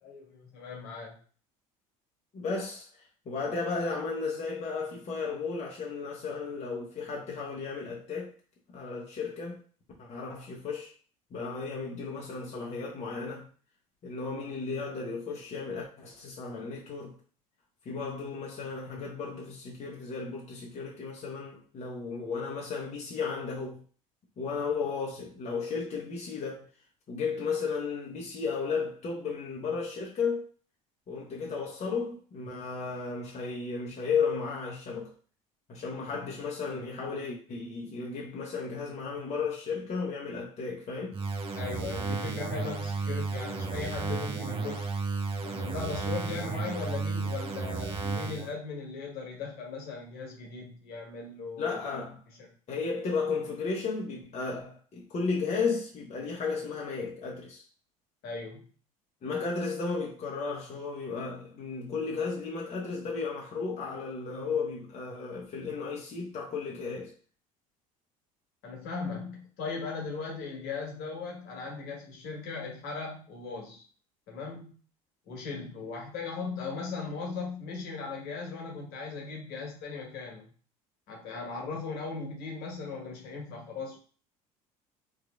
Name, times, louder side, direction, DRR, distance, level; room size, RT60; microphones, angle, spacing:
voice 1, 0.0-1.2 36.1-36.3 41.6-44.9 45.4-51.8 52.4-52.5 58.2-58.7 68.6-73.8 74.3-74.8 75.3-80.5 81.1-84.0, left 4 dB, 60° left, 1.5 m, -38 dB
voice 2, 2.3-8.3 8.7-9.6 10.0-10.9 11.3-13.5 14.0-17.1 17.8-23.8 24.4-26.7 27.1-30.5 31.1-35.1 35.7-41.2 51.6-52.2 52.7-57.6 59.2-67.1, left 4 dB, 40° left, 1.0 m, -34 dB
sound 1, 41.1-48.5, right 4 dB, 30° right, 0.7 m, -33 dB
3.8 x 3.0 x 2.5 m
hypercardioid pair, 70°, 18 cm